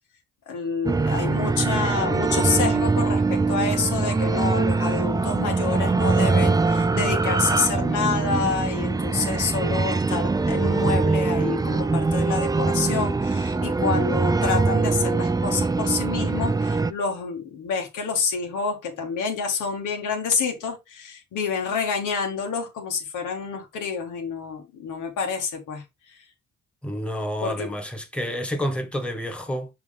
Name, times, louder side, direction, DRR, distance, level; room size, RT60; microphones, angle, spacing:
voice 1, 0.5-25.8 27.4-27.7, left 5 dB, 90° left, 2.2 m, -28 dB
sound 1, 0.8-16.9, right 3 dB, 15° right, 0.4 m, -23 dB
voice 2, 26.8-29.7, equal, 5° left, 1.5 m, -29 dB
6.2 x 4.9 x 3.6 m
cardioid pair, 90°, 30 cm